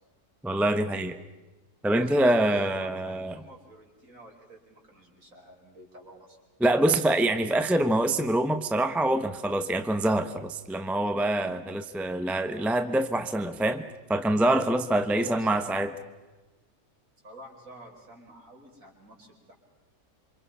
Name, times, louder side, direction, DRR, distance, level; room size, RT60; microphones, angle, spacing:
voice 1, 0.4-1.2 1.8-3.4 6.6-13.8 14.1-15.9, right 1 dB, ahead, 8 dB, 0.8 m, -25 dB
voice 2, 1.9-6.4 9.2-9.6 11.4-11.6 15.2-15.8 17.2-19.5, right 2 dB, 60° right, -1 dB, 5.4 m, -48 dB
28.0 x 25.5 x 5.6 m, 1.2 s
omnidirectional pair, 1.6 m